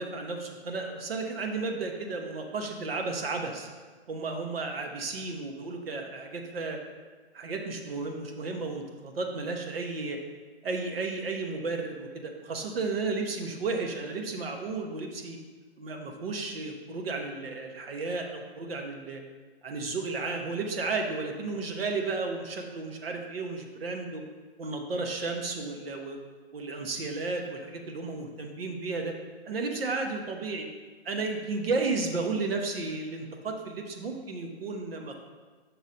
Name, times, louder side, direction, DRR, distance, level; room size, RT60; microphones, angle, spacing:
voice 1, 0.0-3.7 4.1-6.8 7.3-10.2 10.6-15.4 15.8-19.2 19.6-24.2 24.6-26.2 26.5-29.1 29.4-30.7 31.0-35.2, right 3 dB, 60° right, 3 dB, 1.1 m, -33 dB
6.1 x 4.1 x 5.2 m, 1.4 s
hypercardioid pair, 145°, 33 cm